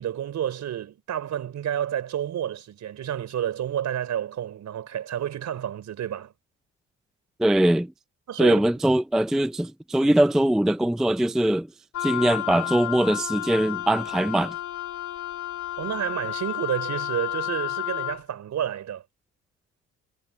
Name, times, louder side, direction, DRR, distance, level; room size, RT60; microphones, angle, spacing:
voice 1, 0.0-6.3 8.3-8.6 15.8-19.0, right 10 dB, 65° right, 4.1 m, -30 dB
voice 2, 7.4-7.9 8.4-11.7 12.0-14.5, right 1 dB, ahead, 0.4 m, -22 dB
Wind instrument woodwind instrument, 11.9-18.2, left 14 dB, 70° left, 2.0 m, -31 dB
cardioid pair, 90°, 30 cm